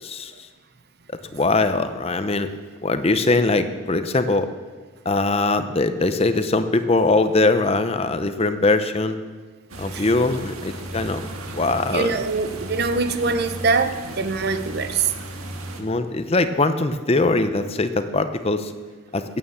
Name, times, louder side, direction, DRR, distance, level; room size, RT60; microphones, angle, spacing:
voice 1, 0.0-0.3 1.1-2.5 2.8-4.5 5.1-9.2 9.8-11.2 11.6-12.2 15.8-18.7 19.1-19.2, left 2 dB, 30° left, 10 dB, 0.6 m, -21 dB
sound 1, 9.7-15.8, right 1 dB, 85° right, 1.8 m, -35 dB
voice 2, 11.9-15.1, right 4 dB, 50° right, 10 dB, 0.8 m, -23 dB
16.5 x 9.0 x 7.2 m, 1.4 s
head